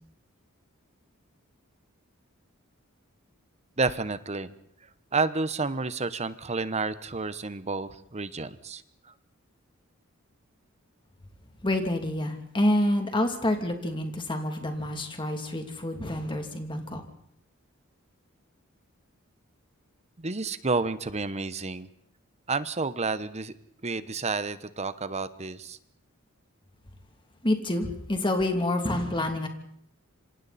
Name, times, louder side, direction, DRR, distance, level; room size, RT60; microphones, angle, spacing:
voice 1, 3.8-4.5 5.1-8.8 20.2-21.9 22.5-23.5 23.8-25.8, right 3 dB, 30° right, 13 dB, 1.1 m, -30 dB
voice 2, 11.6-17.0 27.4-29.5, left 1 dB, 25° left, 5 dB, 2.9 m, -28 dB
27.0 x 26.0 x 4.3 m, 0.68 s
head